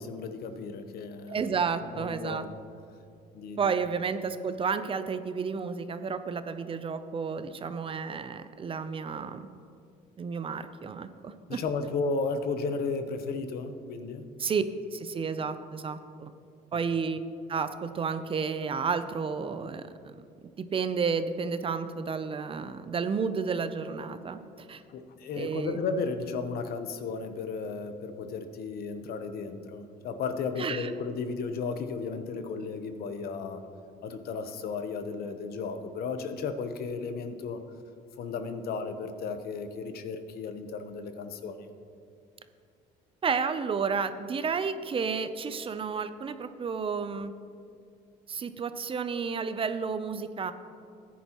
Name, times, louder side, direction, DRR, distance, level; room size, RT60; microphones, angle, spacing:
voice 1, 0.0-1.5 1.9-2.5 3.3-3.6 11.5-14.2 24.9-33.6 34.0-37.6 38.2-41.7, left 4 dB, 65° left, 8 dB, 0.9 m, -34 dB
voice 2, 1.3-2.4 3.6-9.5 10.2-11.6 14.4-14.6 14.9-16.3 16.7-17.2 17.5-20.1 20.6-24.8 25.4-25.8 30.6-30.9 43.2-47.3 48.3-50.5, right 5 dB, 30° right, 11 dB, 0.5 m, -31 dB
14.0 x 10.0 x 3.0 m, 2.4 s
cardioid pair, 110°, 17 cm